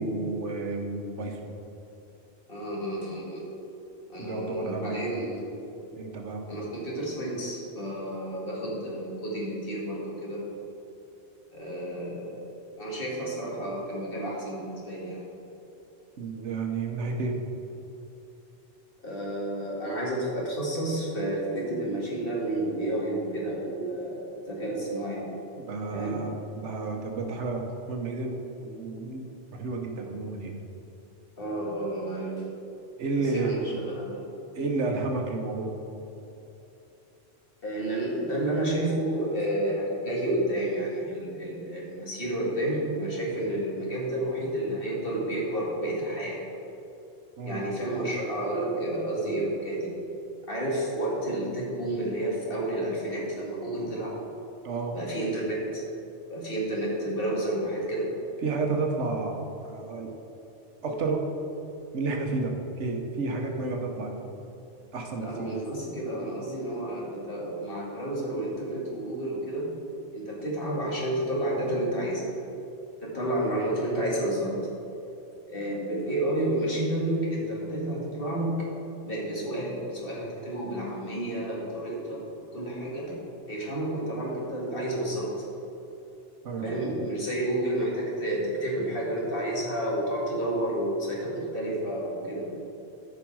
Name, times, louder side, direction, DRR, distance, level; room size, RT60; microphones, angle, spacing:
voice 1, 0.0-1.5 4.2-5.1 5.9-6.4 16.2-17.4 25.7-30.5 33.0-33.8 34.5-35.7 47.4-47.6 54.6-55.0 58.4-59.4 59.7-60.1 60.8-61.3 61.9-64.3 64.9-65.5 86.4-86.7, right 3 dB, 85° right, 2 dB, 1.4 m, -31 dB
voice 2, 2.5-3.4 4.1-5.5 6.5-10.4 11.5-12.4 12.8-15.2 19.0-25.2 25.9-26.2 31.4-32.4 33.1-34.2 37.6-46.4 47.5-50.0 50.5-54.1 54.9-55.8 56.3-58.2 65.2-69.7 70.1-72.3 73.0-74.6 75.5-78.6 79.0-82.2 82.5-83.2 83.5-85.5 86.6-92.5, right 1 dB, 50° left, -5 dB, 2.3 m, -30 dB
13.5 x 5.1 x 4.7 m, 2.9 s
omnidirectional pair, 1.2 m